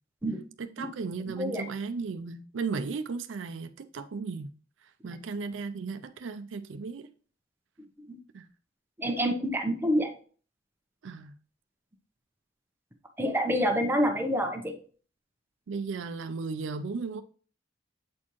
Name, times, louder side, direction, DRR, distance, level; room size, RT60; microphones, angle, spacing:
voice 1, 0.6-4.5 5.0-7.1 8.3-8.5 11.0-11.3 15.7-17.2, right 4 dB, 90° right, 0.5 m, -35 dB
voice 2, 1.3-1.6 5.0-5.2 8.1-8.2 9.0-10.1 13.2-14.8, equal, 10° right, 0.8 m, -27 dB
8.4 x 4.3 x 3.0 m
head